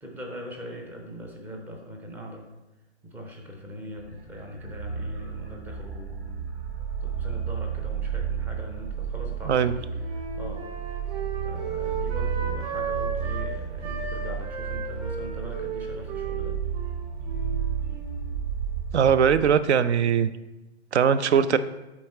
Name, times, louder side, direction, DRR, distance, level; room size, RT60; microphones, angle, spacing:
voice 1, 0.0-2.4 3.0-6.6 7.0-9.8 10.1-10.6 11.4-16.6, equal, 5° right, 2 dB, 0.4 m, -41 dB
sound 1, 4.0-19.6, right 7 dB, 55° right, 2.0 m, -32 dB
Wind instrument woodwind instrument, 9.5-13.5 13.8-18.3, right 5 dB, 35° right, 1.8 m, -35 dB
voice 2, 18.9-20.3 20.9-21.6, right 7 dB, 80° right, 14 dB, 0.5 m, -20 dB
8.5 x 3.6 x 4.2 m, 1.0 s
hypercardioid pair, 130°, 33 cm